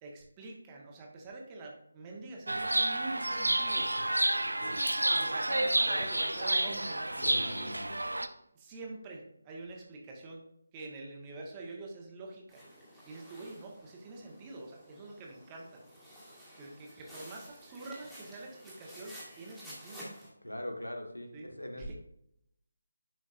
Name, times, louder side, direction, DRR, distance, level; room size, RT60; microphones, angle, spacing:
voice 1, 0.0-3.9 4.6-7.7 8.3-10.4 10.7-12.6 13.1-15.8 16.6-20.0 21.3-21.5 21.8-21.9, right 2 dB, 15° right, -1 dB, 1.4 m, -46 dB
Chirp tweet, 2.5-8.3, right 1 dB, 75° right, 0.6 m, -30 dB
voice 2, 7.2-8.0 20.4-21.9, left 1 dB, 85° left, 3 dB, 1.5 m, -41 dB
sound 1, 12.5-20.3, equal, ahead, 1.9 m, -52 dB
11.0 x 5.0 x 2.6 m, 0.77 s
figure-of-eight pair, 155°, 0 cm